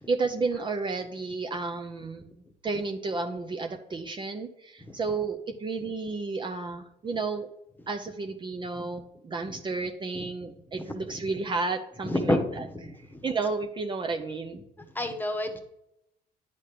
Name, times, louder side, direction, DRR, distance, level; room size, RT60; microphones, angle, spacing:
voice 1, 0.0-2.3 2.6-7.5 7.9-12.6 13.2-14.6, right 3 dB, 30° right, 4 dB, 0.6 m, -32 dB
voice 2, 10.7-11.2 12.0-13.2 14.9-15.6, left 1 dB, 10° left, 5 dB, 1.1 m, -30 dB
9.9 x 4.2 x 5.0 m, 0.81 s
cardioid pair, 110°, 17 cm